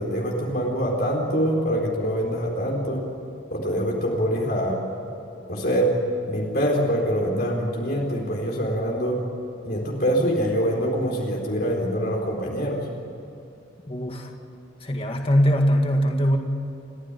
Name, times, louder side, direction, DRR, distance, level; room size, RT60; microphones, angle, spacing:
voice 1, 0.0-3.0 3.5-4.8 5.5-5.9 6.3-9.1 9.6-12.8, equal, 50° left, -1 dB, 4.1 m, -24 dB
voice 2, 13.9-14.3 14.8-16.4, equal, 30° left, 3 dB, 2.0 m, -21 dB
29.5 x 15.5 x 10.0 m, 2.8 s
head